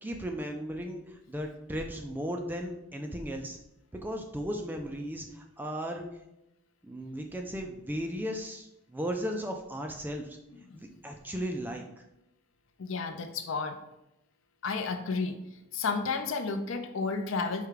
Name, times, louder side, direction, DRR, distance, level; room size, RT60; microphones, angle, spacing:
voice 1, 0.0-3.6 3.9-6.1 6.8-10.4 10.7-12.0, equal, 10° right, 3 dB, 0.3 m, -36 dB
voice 2, 12.8-13.8 14.6-15.4 15.7-17.7, left 4 dB, 60° left, 7 dB, 0.5 m, -32 dB
4.8 x 2.3 x 4.7 m, 0.87 s
head